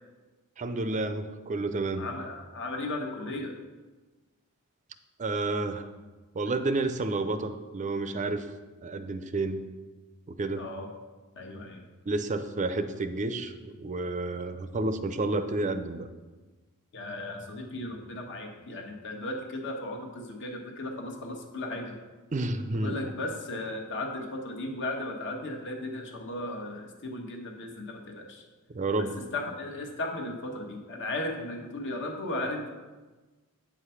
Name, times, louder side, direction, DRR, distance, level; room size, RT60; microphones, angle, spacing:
voice 1, 0.6-2.1 5.2-5.9 6.3-8.5 8.8-9.6 10.3-10.6 12.1-16.1 22.3-23.0 28.7-29.1, right 2 dB, 35° right, 10 dB, 0.5 m, -30 dB
voice 2, 2.0-3.6 10.6-10.9 11.3-11.9 16.9-22.0 22.7-28.5 29.0-32.7, left 2 dB, 55° left, 3 dB, 1.2 m, -36 dB
8.6 x 4.9 x 5.7 m, 1.3 s
head